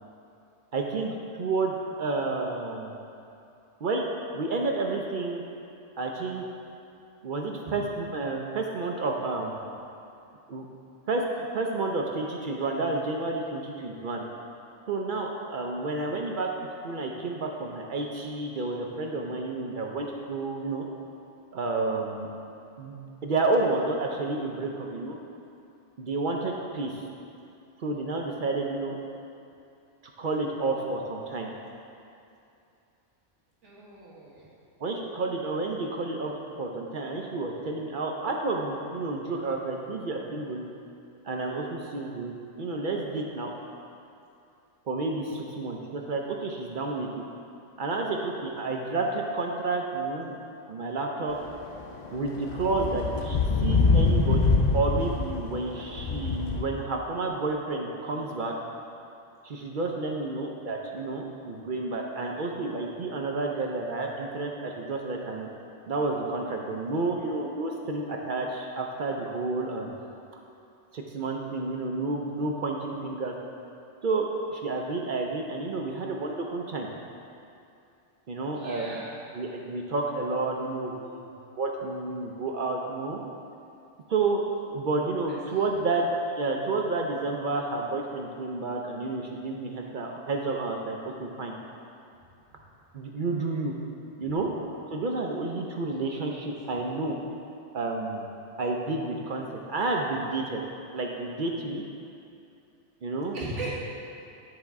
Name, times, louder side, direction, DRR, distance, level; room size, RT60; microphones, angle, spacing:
voice 1, 0.7-3.0 3.8-4.0 4.3-5.4 6.0-6.4 7.2-9.6 10.5-10.7 11.1-11.2 11.5-14.2 14.9-16.5 16.8-20.9 21.5-22.3 22.8-23.0 23.2-25.2 26.0-27.1 27.8-29.0 30.2-31.5 34.8-40.6 41.2-43.5 44.9-47.2 47.8-50.3 50.7-51.4 52.1-58.5 59.4-65.5 65.9-69.9 70.9-73.3 74.0-76.9 78.3-79.0 79.3-81.3 81.5-83.2 84.1-86.1 86.4-91.6 92.9-93.7 94.2-94.5 94.9-97.2 97.7-98.3 98.6-100.6 100.9-101.8 103.0-103.4, right 3 dB, 55° right, 0 dB, 0.6 m, -30 dB
voice 2, 33.6-34.5 78.5-79.2 85.3-85.7 92.5-92.6 103.3-103.8, right 2 dB, 90° right, -6 dB, 1.6 m, -39 dB
sound 1, 51.5-51.6 52.1-56.6, left 4 dB, 55° left, 0.5 m, -24 dB
9.6 x 4.3 x 3.5 m, 2.7 s
omnidirectional pair, 1.2 m